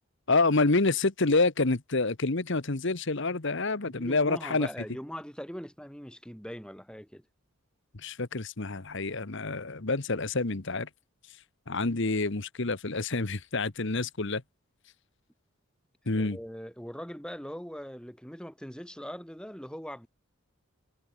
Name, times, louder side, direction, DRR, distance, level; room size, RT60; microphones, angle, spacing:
voice 1, 0.3-4.7 8.0-10.9 11.7-14.4 16.1-16.4, left 3 dB, 55° left, 1.2 m, -27 dB
voice 2, 3.8-7.2 16.2-20.1, equal, 5° left, 6.0 m, -41 dB
head